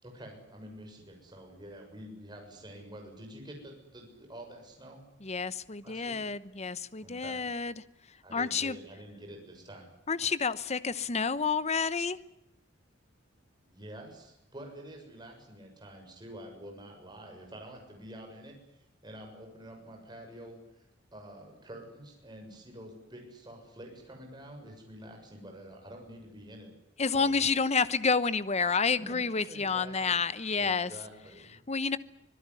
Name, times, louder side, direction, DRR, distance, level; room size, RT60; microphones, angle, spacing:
voice 1, 0.0-5.1 5.8-6.3 7.0-7.5 8.2-9.9 13.6-18.6 19.0-20.8 21.1-26.7 27.1-27.4 29.0-30.2 30.6-31.6, right 1 dB, 25° right, 6.9 m, -48 dB
voice 2, 5.2-7.7 8.3-8.8 10.1-12.2 27.0-30.9 31.7-32.0, left 5 dB, 35° left, 1.0 m, -29 dB
25.5 x 17.5 x 9.8 m
head